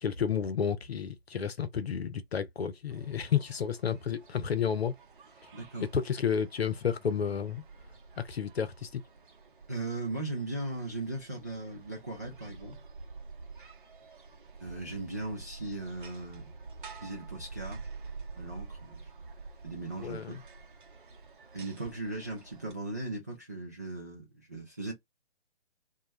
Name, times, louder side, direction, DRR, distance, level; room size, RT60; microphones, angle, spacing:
voice 1, 0.0-4.9 5.8-7.6 8.2-9.0 20.0-20.4, left 7 dB, 75° left, 0.7 m, -31 dB
sound 1, 2.9-22.7, right 4 dB, 55° right, 0.7 m, -48 dB
voice 2, 5.5-5.9 9.7-12.8 14.6-16.4 17.0-17.8 18.3-19.1 19.6-20.4 21.5-24.9, right 2 dB, 20° right, 0.4 m, -38 dB
2.2 x 2.1 x 3.0 m
figure-of-eight pair, 145°, 31 cm